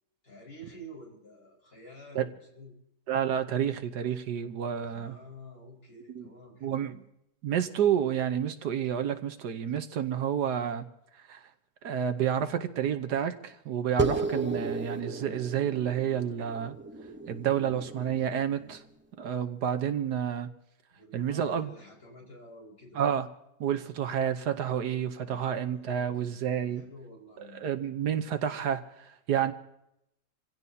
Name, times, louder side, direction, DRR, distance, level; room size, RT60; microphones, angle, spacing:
voice 1, 0.2-2.7 4.8-6.8 20.9-23.0 25.2-26.4 26.7-27.7, equal, 55° left, -2 dB, 5.6 m, -50 dB
voice 2, 3.1-5.1 6.1-6.3 6.6-7.0 7.4-10.9 11.3-11.4 11.8-16.8 17.3-18.8 19.2-20.5 21.1-21.7 22.9-23.3 23.6-26.8 27.5-29.5, right 9 dB, 70° right, 9 dB, 1.5 m, -29 dB
sound 1, 14.0-18.8, right 3 dB, 10° right, 0.5 m, -34 dB
27.5 x 16.5 x 2.8 m, 0.81 s
omnidirectional pair, 1.8 m